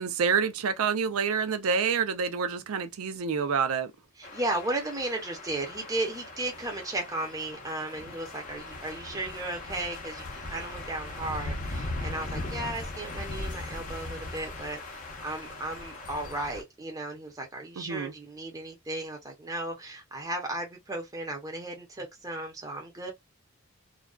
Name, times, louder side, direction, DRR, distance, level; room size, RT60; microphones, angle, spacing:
voice 1, 0.0-3.9 17.8-18.1, right 6 dB, 85° right, 0.4 m, -27 dB
sound 1, 4.2-16.6, left 2 dB, 40° left, 0.6 m, -39 dB
voice 2, 4.2-23.1, right 2 dB, 15° right, 0.6 m, -35 dB
2.4 x 2.2 x 2.3 m
head